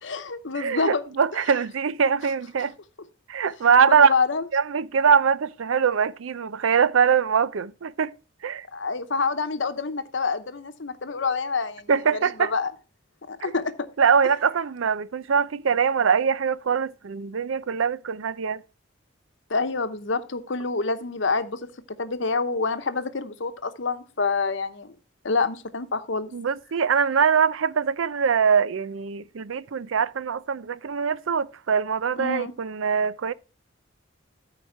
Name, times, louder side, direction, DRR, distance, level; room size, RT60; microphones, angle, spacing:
voice 1, 0.0-1.0 3.9-4.4 8.7-11.9 12.2-12.7 13.3-13.9 19.5-21.7 22.0-24.9 25.2-26.3 32.2-32.5, left 4 dB, 65° left, 0.9 m, -27 dB
voice 2, 0.6-2.7 3.3-4.1 4.5-8.1 8.4-8.6 11.9-12.5 13.4-13.5 14.0-18.6 26.3-33.3, right 6 dB, 80° right, 0.5 m, -22 dB
13.0 x 4.8 x 4.6 m
head